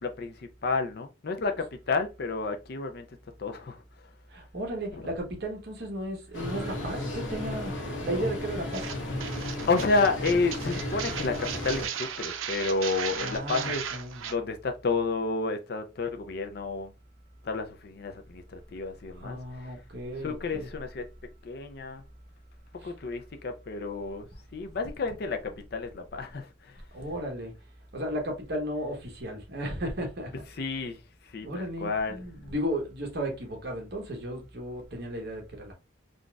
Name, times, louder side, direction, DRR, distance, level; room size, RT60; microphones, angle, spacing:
voice 1, 0.0-3.1 3.4-4.1 4.9-5.1 8.1-8.3 9.7-13.9 14.2-16.9 17.4-19.7 20.2-21.1 21.4-22.0 22.7-26.8 30.6-32.2, left 3 dB, 50° left, 0.5 m, -31 dB
voice 2, 4.3-7.7 8.0-8.9 13.1-14.2 19.2-20.7 22.8-22.9 26.9-27.5 27.9-30.3 31.4-35.7, equal, 55° right, 1.0 m, -34 dB
sound 1, 6.3-11.9, left 1 dB, 70° left, 0.9 m, -34 dB
sound 2, 8.7-14.3, right 8 dB, 90° right, 0.5 m, -36 dB
3.9 x 2.4 x 2.3 m
head